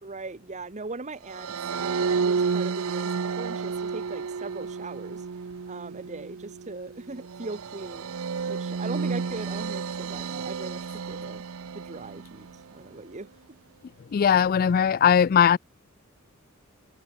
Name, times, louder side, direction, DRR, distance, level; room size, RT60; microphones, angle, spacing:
voice 1, 0.0-5.2 5.7-8.1 8.5-11.4 11.7-12.5 12.7-13.3, right 3 dB, 35° right, 1.1 m, -39 dB
sound 1, 1.3-12.6, right 5 dB, 70° right, 0.6 m, -31 dB
voice 2, 14.1-15.6, left 8 dB, 45° left, 0.3 m, -19 dB
head